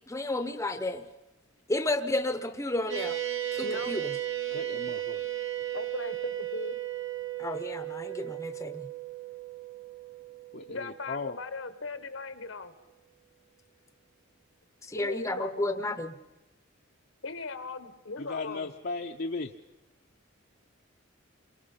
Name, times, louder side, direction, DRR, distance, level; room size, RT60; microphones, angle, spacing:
voice 1, 0.1-1.1 1.7-3.2 3.5-4.1 7.4-8.9 14.8-16.1, left 2 dB, 15° left, 9 dB, 0.8 m, -32 dB
sound 1, 2.9-11.6, right 13 dB, 65° right, 3.2 m, -35 dB
voice 2, 3.6-4.0 5.7-6.8 10.7-12.7 14.9-15.8 17.2-18.7, left 3 dB, 85° left, 10 dB, 1.4 m, -38 dB
voice 3, 4.5-5.2 10.5-11.4 18.2-19.5, left 3 dB, 55° left, 2 dB, 0.7 m, -36 dB
28.0 x 23.0 x 5.7 m, 1.0 s
head